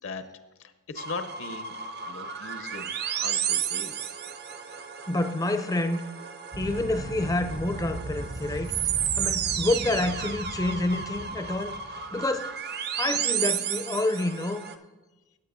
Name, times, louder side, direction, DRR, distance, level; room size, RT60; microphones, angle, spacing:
voice 1, 0.6-1.8 2.0-4.1, left 4 dB, 60° left, 10 dB, 0.7 m, -39 dB
sound 1, 1.0-14.7, right 8 dB, 45° right, 0.5 m, -32 dB
voice 2, 5.1-6.0 6.6-8.7 9.2-12.5 13.0-14.6, left 2 dB, 15° left, 9 dB, 0.4 m, -28 dB
sound 2, 6.5-12.3, right 1 dB, 65° right, 0.9 m, -38 dB
16.5 x 8.5 x 2.6 m, 1.1 s
head